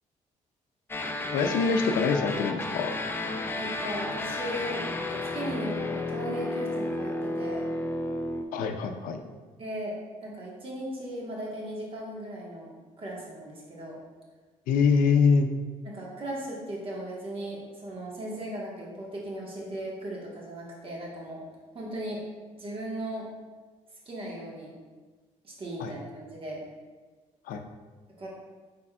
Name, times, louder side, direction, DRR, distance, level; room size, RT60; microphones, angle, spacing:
sound 1, 0.9-8.4, left 2 dB, 15° left, 0.4 m, -32 dB
voice 1, 1.3-2.9 8.5-9.2 14.7-15.5 25.8-25.9 27.5-27.6, left 5 dB, 85° left, 6 dB, 0.4 m, -24 dB
voice 2, 3.5-7.7 9.6-9.9 10.2-14.0 15.8-21.4 21.7-22.2 22.6-23.2 24.0-24.7 25.4-26.6 28.2-28.3, right 1 dB, 40° right, -4 dB, 1.4 m, -37 dB
5.0 x 4.2 x 2.3 m, 1.4 s
cardioid pair, 75°, 14 cm